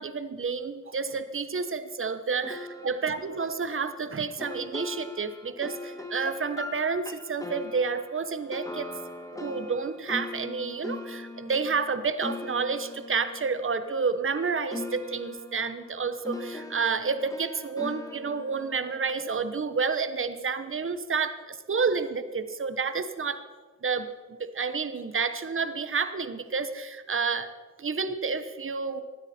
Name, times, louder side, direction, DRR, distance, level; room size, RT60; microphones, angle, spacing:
voice 1, 0.0-8.9 9.3-23.4 23.8-24.1 24.4-27.5 27.8-29.0, right 5 dB, 40° right, 11 dB, 1.1 m, -30 dB
sound 1, 2.4-14.4 14.7-19.9, left 2 dB, 10° left, 1.6 m, -41 dB
19.5 x 12.5 x 4.4 m, 1.4 s
cardioid pair, 75°, 32 cm